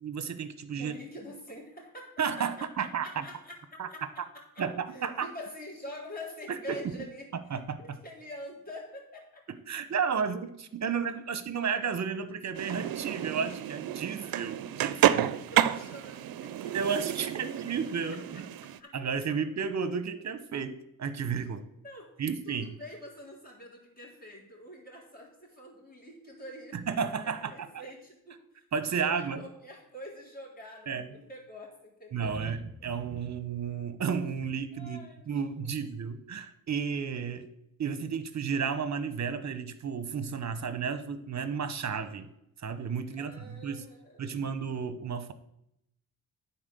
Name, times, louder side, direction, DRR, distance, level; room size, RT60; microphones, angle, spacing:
voice 1, 0.0-1.0 2.2-3.2 3.8-3.9 4.6-5.3 6.7-6.8 7.5-7.8 9.7-15.3 16.7-18.2 18.9-21.6 22.2-22.7 26.7-27.5 28.7-29.4 30.9-31.1 32.1-37.5 37.8-42.3 42.6-43.8 44.2-45.3, right 6 dB, 50° right, 11 dB, 1.0 m, -32 dB
voice 2, 0.7-9.4 12.6-12.7 15.5-17.7 18.1-18.9 21.8-22.1 22.4-26.8 27.2-28.6 28.9-32.4 34.7-35.7 43.1-44.4, left 1 dB, 25° left, -3 dB, 3.9 m, -46 dB
sound 1, 12.5-18.8, right 11 dB, 70° right, 0.6 m, -30 dB
9.7 x 4.4 x 6.8 m, 0.80 s
cardioid pair, 65°, 36 cm